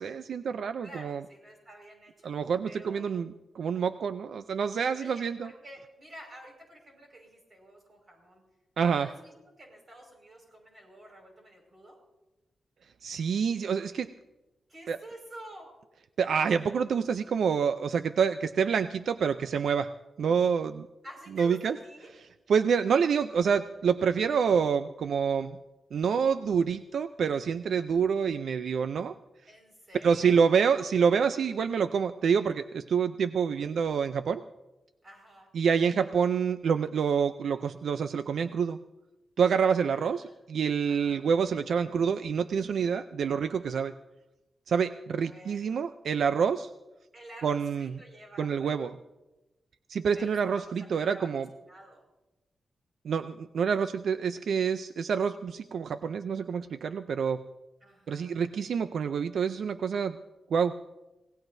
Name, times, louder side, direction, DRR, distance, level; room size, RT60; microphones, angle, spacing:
voice 1, 0.0-1.2 2.2-5.5 8.8-9.1 13.0-14.1 14.9-15.0 16.2-19.9 20.2-20.9 21.4-21.8 22.5-25.6 25.9-29.1 30.0-34.4 35.5-38.8 39.4-43.9 44.7-46.7 47.4-48.0 48.4-48.9 49.9-51.5 53.0-57.4 58.1-60.2 60.5-60.7, right 6 dB, 75° right, 10 dB, 0.5 m, -27 dB
voice 2, 0.8-3.2 4.9-8.4 8.9-12.0 14.7-15.7 21.0-22.1 29.5-30.5 35.0-35.5 39.9-40.4 40.9-41.3 45.3-45.8 47.1-48.9 50.1-51.3 51.6-52.1 57.8-58.4, right 1 dB, 35° right, 1 dB, 5.3 m, -50 dB
25.5 x 18.0 x 2.7 m, 1.0 s
wide cardioid pair, 150°, 0 cm